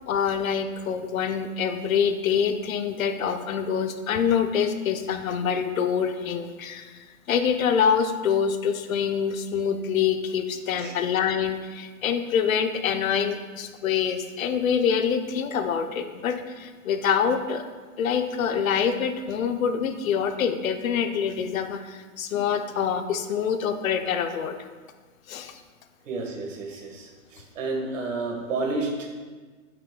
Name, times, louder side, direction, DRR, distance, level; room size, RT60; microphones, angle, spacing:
voice 1, 0.1-6.9 7.3-17.6 18.0-24.6 25.3-25.6, left 7 dB, 85° left, 8 dB, 0.7 m, -25 dB
voice 2, 26.1-29.1, right 3 dB, 70° right, 1 dB, 1.5 m, -31 dB
7.7 x 5.9 x 2.2 m, 1.4 s
hypercardioid pair, 175°, 40 cm